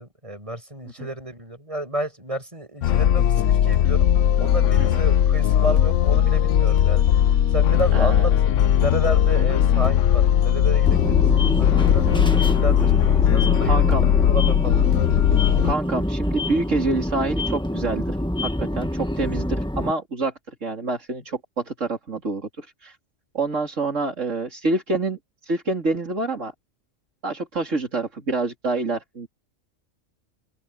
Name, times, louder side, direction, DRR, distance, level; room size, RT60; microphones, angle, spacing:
voice 1, 0.0-4.1 4.4-11.3 11.6-13.9 14.3-14.8, right 1 dB, 25° right, 6.6 m, -31 dB
sound 1, 2.8-15.7, left 10 dB, 75° left, 1.0 m, -18 dB
voice 2, 7.9-8.3 13.6-14.1 15.6-18.2 18.4-23.0 23.3-26.5 27.2-29.3, right 3 dB, 75° right, 3.6 m, -27 dB
sound 2, 10.9-19.9, left 1 dB, 5° left, 1.6 m, -26 dB
open air
omnidirectional pair, 1.3 m